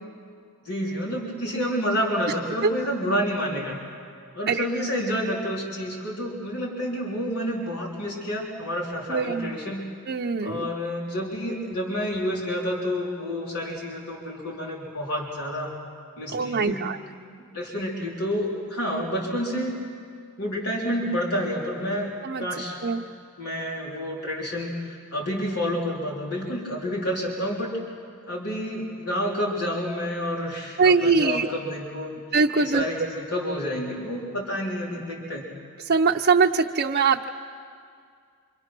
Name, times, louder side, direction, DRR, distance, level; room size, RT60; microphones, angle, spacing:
voice 1, 0.6-3.8 4.3-9.9 10.4-15.7 16.2-16.9 17.5-19.8 20.4-22.1 22.4-22.8 23.4-27.8 28.3-32.2 32.6-35.4, equal, 80° left, -3 dB, 3.9 m, -29 dB
voice 2, 9.1-9.5 10.1-10.7 16.3-17.0 22.2-22.4 22.8-23.0 30.8-31.5 32.3-33.1 35.8-37.3, right 4 dB, 45° right, 0 dB, 0.7 m, -22 dB
26.5 x 26.0 x 6.1 m, 2.2 s
head